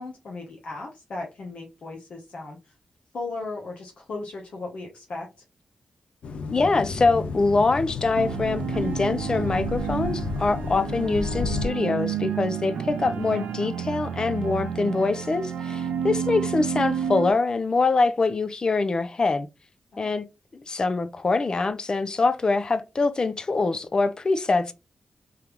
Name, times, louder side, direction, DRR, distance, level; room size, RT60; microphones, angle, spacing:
voice 1, 0.0-2.7 3.1-5.3 19.9-20.1, left 3 dB, 70° left, 1.0 m, -36 dB
sound 1, 6.2-11.7, left 4 dB, 90° left, 0.5 m, -32 dB
voice 2, 6.5-19.5 20.0-20.2 20.5-24.7, left 3 dB, 40° left, 0.5 m, -24 dB
sound 2, 8.2-17.3, right 8 dB, 85° right, 0.6 m, -30 dB
3.7 x 3.2 x 3.0 m
cardioid pair, 75°, 2 cm